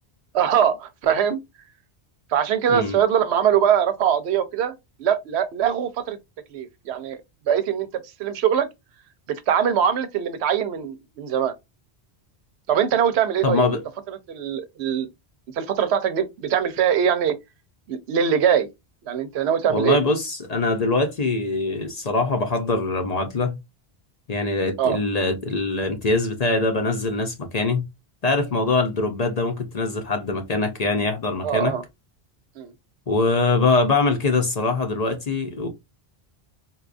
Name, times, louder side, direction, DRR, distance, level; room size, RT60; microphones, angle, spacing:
voice 1, 0.3-1.4 2.3-4.7 5.0-6.2 6.5-7.2 7.5-8.7 9.3-11.5 12.7-13.7 14.3-15.1 15.5-17.4 17.9-18.7 19.0-20.0 24.8-25.0 31.4-31.8 32.6-32.7, right 8 dB, 85° right, 0.9 m, -22 dB
voice 2, 2.7-3.0 13.4-13.8 19.7-23.6 24.3-27.9 28.2-31.7 33.1-35.7, left 3 dB, 45° left, 0.6 m, -23 dB
4.1 x 2.3 x 2.4 m
omnidirectional pair, 1.1 m